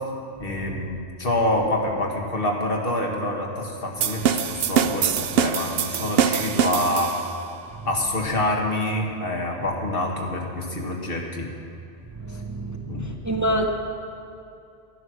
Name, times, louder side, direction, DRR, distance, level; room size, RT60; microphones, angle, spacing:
voice 1, 0.4-7.1 7.8-11.5 12.9-13.1, left 1 dB, 55° left, 0 dB, 1.8 m, -26 dB
sound 1, 4.0-7.4, right 8 dB, 65° right, 0.8 m, -23 dB
voice 2, 12.2-13.7, right 1 dB, 20° right, 2 dB, 0.7 m, -27 dB
13.0 x 10.5 x 6.2 m, 2.6 s
omnidirectional pair, 1.1 m